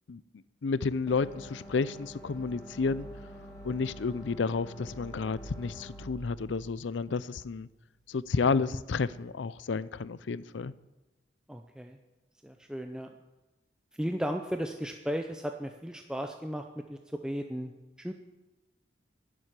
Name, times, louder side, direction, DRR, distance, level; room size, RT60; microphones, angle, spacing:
voice 1, 0.6-3.1 3.6-7.7 8.1-10.7, left 4 dB, 90° left, 0.5 m, -31 dB
sound 1, 1.1-8.1, right 1 dB, 20° left, 6.2 m, -47 dB
voice 2, 11.5-12.0 12.4-13.1 14.0-16.6 16.9-17.0 17.2-17.7 18.0-18.1, equal, 5° right, 0.6 m, -35 dB
11.0 x 7.7 x 9.7 m
head